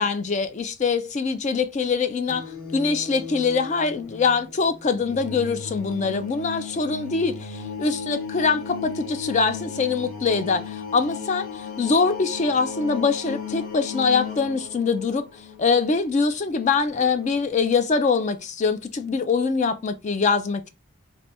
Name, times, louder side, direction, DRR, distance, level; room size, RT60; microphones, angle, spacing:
voice 1, 0.0-11.5 11.8-15.3 15.6-20.7, left 4 dB, 35° left, 0.3 m, -23 dB
sound 1, 2.3-17.6, left 6 dB, 85° left, 1.0 m, -36 dB
3.2 x 2.6 x 2.7 m
head